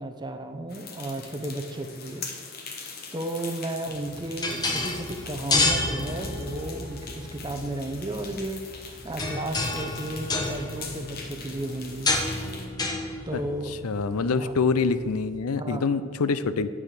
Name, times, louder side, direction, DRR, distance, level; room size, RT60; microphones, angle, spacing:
voice 1, 0.0-2.3 3.1-12.2 13.3-13.7 14.3-14.5 15.6-15.9, right 1 dB, 20° right, 6 dB, 0.7 m, -34 dB
sound 1, 0.7-12.7, left 5 dB, 45° left, 1.2 m, -42 dB
sound 2, 3.9-15.3, left 2 dB, 20° left, 0.9 m, -31 dB
voice 2, 13.7-16.7, left 4 dB, 85° left, 13 dB, 0.5 m, -26 dB
9.5 x 4.9 x 7.4 m, 2.1 s
head